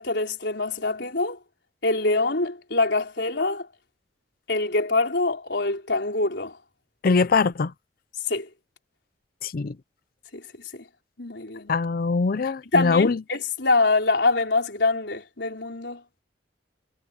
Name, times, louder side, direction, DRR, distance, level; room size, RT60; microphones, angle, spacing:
voice 1, 0.0-1.4 1.8-3.7 4.5-6.6 8.3-8.5 10.3-10.4 10.7-10.9 11.2-11.7 12.7-16.0, left 3 dB, 65° left, 4.6 m, -24 dB
voice 2, 7.0-7.7 9.4-9.7 11.7-13.2, left 4 dB, 50° left, 0.5 m, -22 dB
head